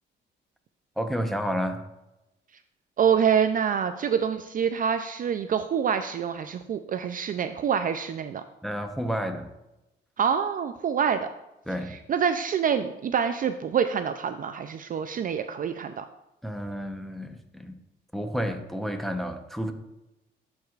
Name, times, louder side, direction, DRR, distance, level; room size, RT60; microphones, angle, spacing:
voice 1, 1.0-1.9 8.6-9.5 11.7-12.0 16.4-17.7 18.1-19.7, equal, ahead, 5 dB, 0.8 m, -30 dB
voice 2, 3.0-8.4 10.2-11.3 11.9-16.0, right 7 dB, 45° right, 9 dB, 0.4 m, -26 dB
11.5 x 4.7 x 2.4 m, 0.93 s
cardioid pair, 90°, 20 cm